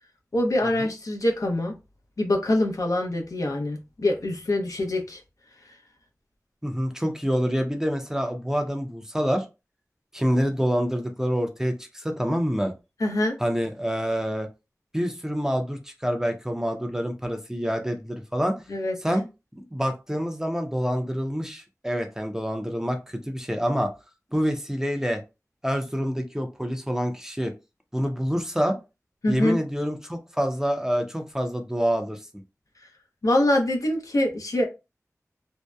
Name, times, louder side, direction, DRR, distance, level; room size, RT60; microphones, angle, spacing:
voice 1, 0.3-1.7 2.2-5.2 13.0-13.4 18.7-18.9 29.2-29.6 33.2-34.7, left 1 dB, 75° left, 0.6 m, -24 dB
voice 2, 6.6-9.5 10.1-12.7 13.4-14.5 14.9-18.6 19.0-19.2 19.6-23.0 23.3-23.9 24.3-25.2 25.6-27.5 27.9-28.8 29.3-32.2, equal, 10° right, 0.5 m, -27 dB
2.6 x 2.1 x 2.2 m
wide cardioid pair, 55°, 6 cm